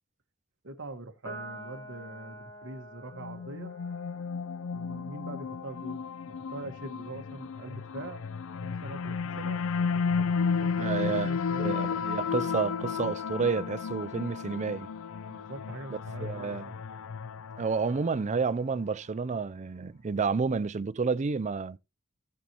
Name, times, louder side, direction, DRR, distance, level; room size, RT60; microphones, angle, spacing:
voice 1, 0.6-3.7 4.7-8.2 8.6-12.1 15.3-16.7, right 2 dB, 55° right, 1.6 m, -43 dB
Piano, 1.2-7.9, right 1 dB, 15° left, 2.6 m, -49 dB
sound 1, 3.1-18.5, left 5 dB, 65° left, 0.5 m, -33 dB
voice 2, 10.8-11.3 11.6-14.9 16.2-16.7 17.6-21.8, right 5 dB, 30° right, 0.4 m, -30 dB
17.5 x 6.1 x 3.0 m
head